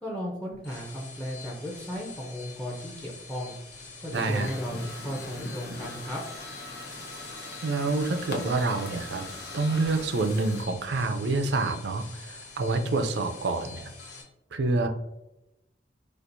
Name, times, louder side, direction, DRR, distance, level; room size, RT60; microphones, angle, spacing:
voice 1, 0.0-3.6 4.0-6.2, equal, 5° left, -2 dB, 0.5 m, -35 dB
sound 1, 0.5-14.2, left 2 dB, 75° left, 1.1 m, -44 dB
sound 2, 4.1-10.6, left 3 dB, 60° left, 0.7 m, -42 dB
voice 2, 4.1-4.5 7.6-9.3 9.5-13.9 14.5-14.9, right 3 dB, 75° right, 6 dB, 0.4 m, -27 dB
4.3 x 2.4 x 2.6 m, 0.90 s
head